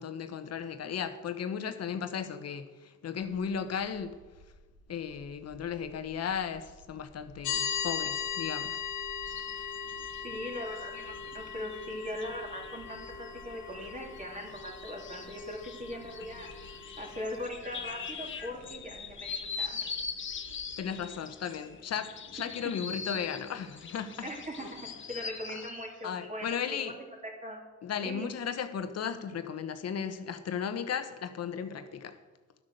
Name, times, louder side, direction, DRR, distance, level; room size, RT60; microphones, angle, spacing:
voice 1, 0.0-4.2 4.9-8.8 20.8-24.3 24.6-24.7 26.0-27.0 27.8-32.2, left 7 dB, 55° left, 1.0 m, -35 dB
sound 1, 3.2-21.1, right 1 dB, 75° right, 2.2 m, -57 dB
sound 2, 7.4-17.5, left 7 dB, 90° left, 1.7 m, -39 dB
sound 3, 9.3-25.9, left 5 dB, 40° left, 1.1 m, -43 dB
voice 2, 10.2-16.5 17.0-19.9 22.6-22.7 24.2-24.8 25.1-26.9 27.4-27.6 28.0-28.3, equal, 25° right, 3.2 m, -40 dB
12.0 x 7.6 x 6.6 m
cardioid pair, 90°, 30 cm